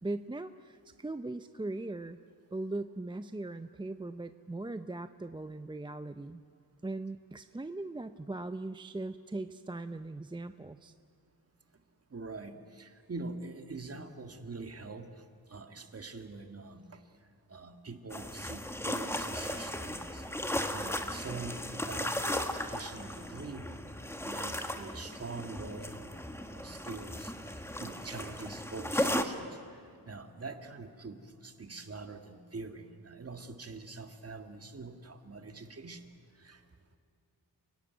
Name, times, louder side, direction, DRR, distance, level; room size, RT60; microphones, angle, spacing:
voice 1, 0.0-2.2 2.5-6.4 6.8-10.9, right 2 dB, 10° right, 10 dB, 0.5 m, -39 dB
voice 2, 12.1-15.1 15.5-17.0 17.5-20.2 20.7-23.7 24.2-26.2 26.4-27.3 27.8-29.5 30.1-36.0 36.4-36.6, right 3 dB, 40° right, 7 dB, 1.9 m, -44 dB
sound 1, 18.1-29.2, left 1 dB, 5° left, 1.5 m, -36 dB
30.0 x 17.0 x 9.3 m, 2.4 s
wide cardioid pair, 120°, 39 cm